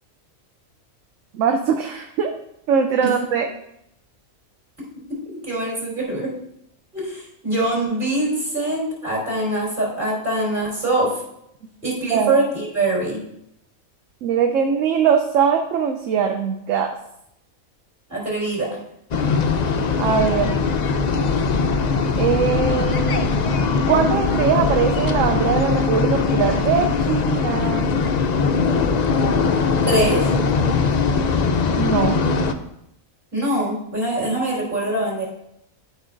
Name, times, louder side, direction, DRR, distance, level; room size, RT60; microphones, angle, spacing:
voice 1, 1.3-2.3 2.7-3.5 12.1-12.4 14.2-16.9 20.0-20.6 22.2-23.3 23.9-27.9 31.8-32.2, right 7 dB, 70° right, 5 dB, 1.0 m, -21 dB
voice 2, 4.8-6.3 6.9-11.2 11.8-13.2 18.1-18.7 29.9-30.2 33.3-35.3, right 2 dB, 35° right, -5 dB, 3.7 m, -23 dB
sound 1, 19.1-32.5, left 4 dB, 75° left, 0.3 m, -20 dB
12.5 x 5.4 x 2.5 m, 0.78 s
omnidirectional pair, 1.4 m